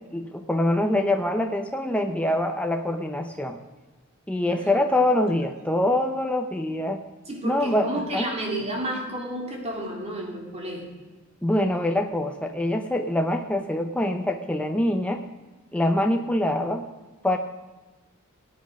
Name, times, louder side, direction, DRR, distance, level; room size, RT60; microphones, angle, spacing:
voice 1, 0.1-3.6 4.3-7.0 7.4-8.3 11.4-15.2 15.7-16.8 17.2-17.4, left 1 dB, 5° left, 4 dB, 0.6 m, -24 dB
voice 2, 4.5-5.0 7.3-10.9, right 1 dB, 30° right, -1 dB, 3.1 m, -32 dB
18.5 x 9.0 x 5.2 m, 1.2 s
head